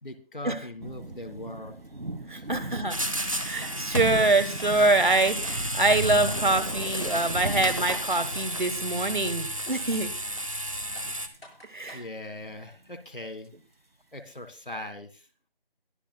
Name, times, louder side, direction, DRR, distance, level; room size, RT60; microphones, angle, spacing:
voice 1, 0.0-1.8 2.3-2.5 11.0-11.1 11.9-13.5 14.1-15.3, left 1 dB, 60° left, 10 dB, 1.9 m, -40 dB
sound 1, 0.8-11.4 11.8-12.9 14.3-14.4, right 1 dB, 75° right, 2.0 m, -38 dB
voice 2, 2.3-3.0 3.4-10.1 11.7-12.0, right 2 dB, 55° right, 12 dB, 1.4 m, -25 dB
sound 2, 2.9-11.3, right 1 dB, 35° right, 0.9 m, -32 dB
sound 3, 3.3-3.8 4.1-4.2 4.6-5.6 6.0-6.1 6.5-6.8 7.1-7.3 7.7-8.6 9.2-9.3 9.7-10.0 10.4-10.5 10.9-12.1, left 1 dB, 85° left, 7.2 m, -48 dB
21.5 x 8.7 x 2.3 m, 0.35 s
figure-of-eight pair, 175°, 29 cm